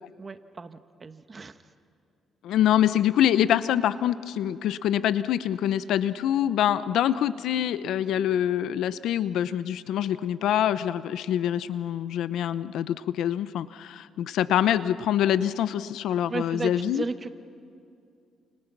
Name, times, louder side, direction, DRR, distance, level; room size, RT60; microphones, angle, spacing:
voice 1, 0.2-1.6 16.3-17.3, right 4 dB, 35° right, 9 dB, 1.3 m, -35 dB
voice 2, 2.4-17.0, left 11 dB, 80° left, 14 dB, 0.8 m, -25 dB
30.0 x 28.5 x 6.1 m, 2.5 s
cardioid pair, 90°, 0 cm